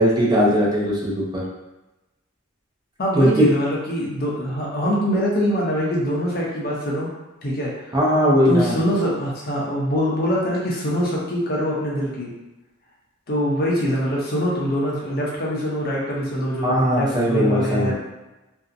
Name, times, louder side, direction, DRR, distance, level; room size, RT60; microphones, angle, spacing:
voice 1, 0.0-1.4 3.2-3.5 7.9-8.8 16.6-17.9, equal, 20° right, -5 dB, 0.4 m, -19 dB
voice 2, 3.0-7.1 7.4-8.0 8.5-12.3 13.3-17.9, equal, 45° left, -4 dB, 0.6 m, -23 dB
2.6 x 2.0 x 2.5 m, 1.0 s
head